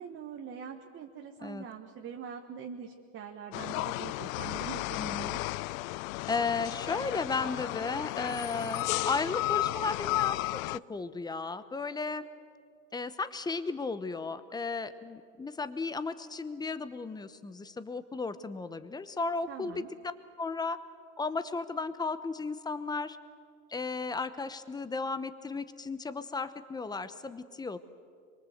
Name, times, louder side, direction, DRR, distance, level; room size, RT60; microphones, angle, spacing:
voice 1, 0.0-5.4 19.5-19.9, right 7 dB, 30° right, 3 dB, 1.4 m, -43 dB
sound 1, 3.5-10.8, left 19 dB, 85° left, 0.5 m, -33 dB
voice 2, 5.0-5.3 6.2-12.2 12.9-19.8 20.4-20.8 21.2-23.2 23.7-27.8, left 4 dB, 10° left, 12 dB, 0.8 m, -34 dB
25.0 x 23.5 x 8.0 m, 2.2 s
supercardioid pair, 140°, 40 cm